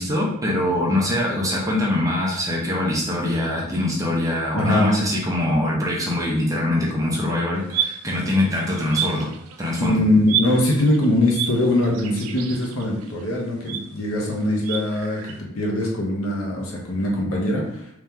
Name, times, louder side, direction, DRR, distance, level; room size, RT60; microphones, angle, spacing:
voice 1, 0.0-9.3 9.6-10.0, left 1 dB, 15° right, -3 dB, 0.7 m, -23 dB
voice 2, 4.5-5.0 9.8-17.9, left 1 dB, 70° left, -1 dB, 1.0 m, -22 dB
sound 1, 7.6-9.8 10.3-15.4, right 9 dB, 80° right, 0.4 m, -31 dB
3.1 x 2.9 x 3.6 m, 0.74 s
head